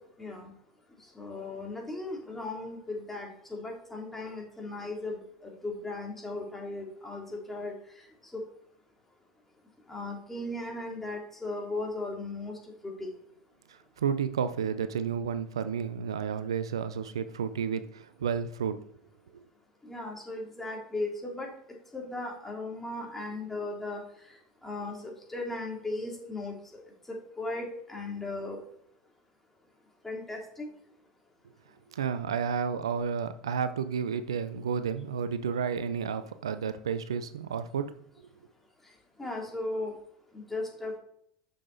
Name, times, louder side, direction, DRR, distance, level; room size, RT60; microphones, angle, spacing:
voice 1, 1.2-5.2 5.4-7.7 8.3-8.4 9.9-12.5 13.0-13.1 19.8-21.5 21.9-24.0 24.6-26.5 27.4-28.6 30.0-30.7 39.2-39.9 40.5-40.9, left 2 dB, 10° left, -1 dB, 2.8 m, -36 dB
voice 2, 14.0-18.8 19.3-19.4 31.9-37.9, right 7 dB, 90° right, 12 dB, 0.5 m, -31 dB
6.8 x 6.0 x 4.0 m, 0.68 s
hypercardioid pair, 85°, 3 cm